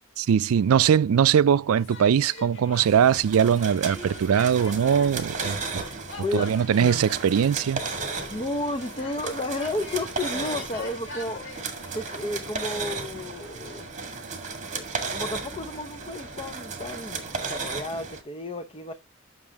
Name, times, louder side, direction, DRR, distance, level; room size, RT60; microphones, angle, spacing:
voice 1, 0.2-5.8 6.3-7.8, right 8 dB, 80° right, 0.4 m, -21 dB
sound 1, 1.8-17.3, left 2 dB, 65° left, 2.7 m, -45 dB
sound 2, 2.7-18.2, right 4 dB, 35° right, 1.9 m, -35 dB
voice 2, 6.2-7.1 8.3-11.5 11.9-14.0 15.1-18.9, left 1 dB, 25° left, 0.7 m, -32 dB
8.9 x 6.2 x 3.5 m
head